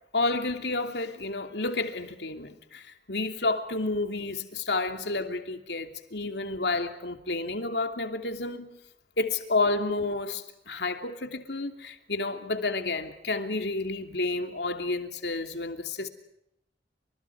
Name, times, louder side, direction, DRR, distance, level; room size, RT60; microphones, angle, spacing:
voice 1, 0.1-8.8 9.2-16.1, left 3 dB, 75° left, 2.8 m, -30 dB
29.5 x 26.0 x 4.8 m
head